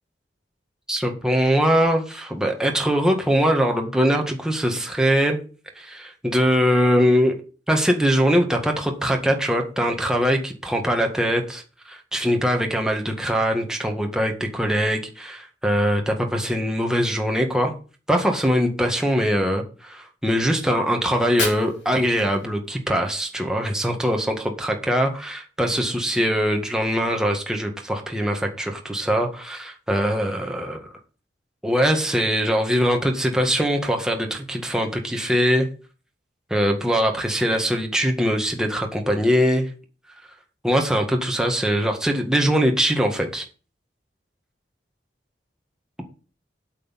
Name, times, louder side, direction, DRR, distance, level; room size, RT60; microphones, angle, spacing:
voice 1, 0.9-5.4 5.8-7.4 7.7-11.6 11.9-17.7 18.1-30.9 31.6-35.7 36.5-39.7 40.6-43.5, equal, 5° right, 2 dB, 1.9 m, -22 dB
Fire, 21.1-23.1, left 4 dB, 85° left, 3.6 m, -33 dB
8.3 x 6.4 x 7.5 m, 0.36 s
head